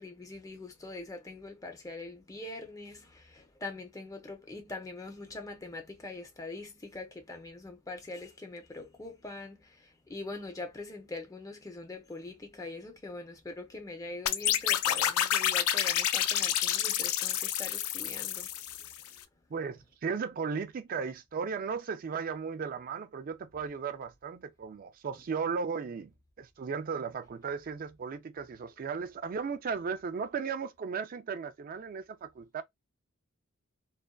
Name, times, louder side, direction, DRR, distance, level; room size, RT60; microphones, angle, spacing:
voice 1, 0.0-18.5 18.8-19.2, left 2 dB, 15° left, 0.6 m, -43 dB
sound 1, 14.3-19.1, left 11 dB, 85° left, 0.4 m, -29 dB
voice 2, 19.5-32.6, right 5 dB, 40° right, 0.3 m, -36 dB
2.5 x 2.2 x 2.2 m
head